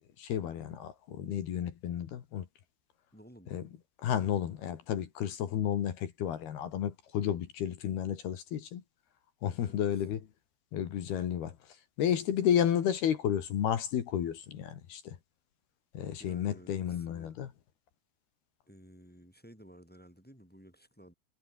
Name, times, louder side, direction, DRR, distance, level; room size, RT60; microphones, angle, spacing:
voice 1, 0.0-2.5 3.5-3.6 4.0-8.8 9.4-10.2 10.7-11.6 12.0-15.2 15.9-17.5, left 9 dB, 60° left, 3.5 m, -32 dB
voice 2, 3.1-3.5 9.6-10.0 16.2-17.3 18.7-21.1, equal, ahead, 7.5 m, -55 dB
omnidirectional pair, 6.0 m